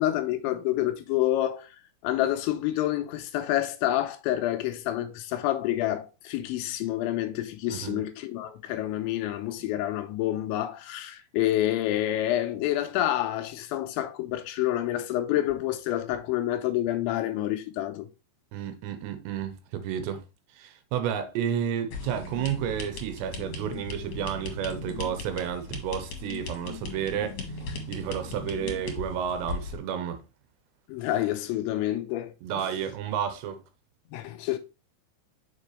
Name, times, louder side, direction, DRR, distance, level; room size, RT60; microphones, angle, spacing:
voice 1, 0.0-1.7 2.0-18.1 30.9-32.7 34.1-34.6, left 13 dB, 85° left, 3.0 m, -28 dB
voice 2, 7.7-8.1 18.5-20.2 20.6-27.4 27.9-30.2 32.4-33.6, right 9 dB, 75° right, 2.8 m, -31 dB
sound 1, 21.9-29.8, left 3 dB, 60° left, 2.0 m, -38 dB
6.8 x 5.1 x 3.2 m
omnidirectional pair, 5.6 m